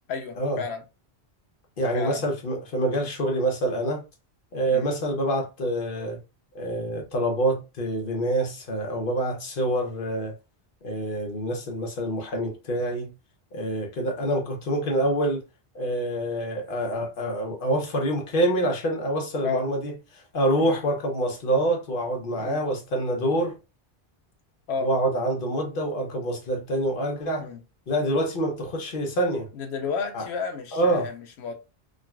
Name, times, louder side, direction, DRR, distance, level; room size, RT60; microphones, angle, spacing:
voice 1, 0.1-0.8 1.9-2.2 4.7-4.9 19.4-19.6 20.6-20.7 22.4-22.6 24.7-24.9 27.4-27.6 29.5-31.5, left 5 dB, 85° left, 0.9 m, -31 dB
voice 2, 1.8-4.0 4.5-6.2 6.5-10.3 10.8-13.1 13.5-15.4 15.7-23.6 24.8-27.5 27.9-29.5 30.1-30.3 30.7-31.1, right 1 dB, 60° left, 1.0 m, -26 dB
3.7 x 2.2 x 2.2 m
omnidirectional pair, 1.1 m